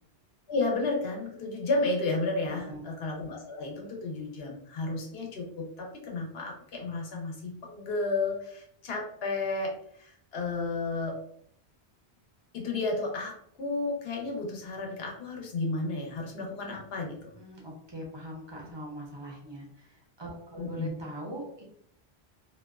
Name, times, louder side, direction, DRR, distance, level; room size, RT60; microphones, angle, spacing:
voice 1, 0.5-11.2 12.5-17.2 20.6-20.9, left 3 dB, 70° left, 0 dB, 0.9 m, -32 dB
voice 2, 2.4-2.8 17.3-21.6, right 1 dB, 35° right, -1 dB, 0.5 m, -41 dB
2.5 x 2.2 x 2.3 m, 0.65 s
omnidirectional pair, 1.1 m